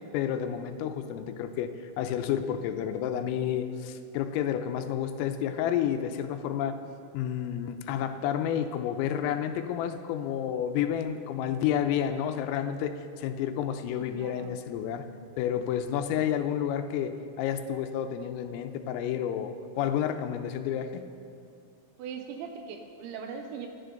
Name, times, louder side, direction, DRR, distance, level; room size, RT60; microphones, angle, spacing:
voice 1, 0.1-6.8 7.1-15.0 15.4-21.1, left 9 dB, 90° left, 7 dB, 3.4 m, -30 dB
voice 2, 13.9-14.5 22.0-23.7, right 6 dB, 75° right, 4 dB, 3.0 m, -40 dB
26.0 x 10.5 x 3.9 m, 2.5 s
omnidirectional pair, 5.9 m